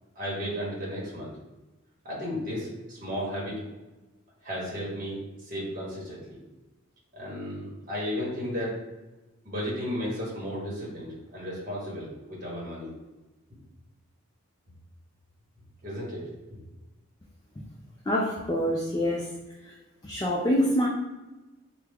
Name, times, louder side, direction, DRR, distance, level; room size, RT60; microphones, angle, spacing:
voice 1, 0.1-1.3 2.0-3.6 4.4-6.2 7.1-8.8 9.4-12.9 15.8-16.2, equal, 35° right, -5 dB, 1.1 m, -34 dB
voice 2, 18.1-19.3 20.0-20.9, equal, 15° left, -3 dB, 0.3 m, -25 dB
3.3 x 2.3 x 3.4 m, 1.1 s
head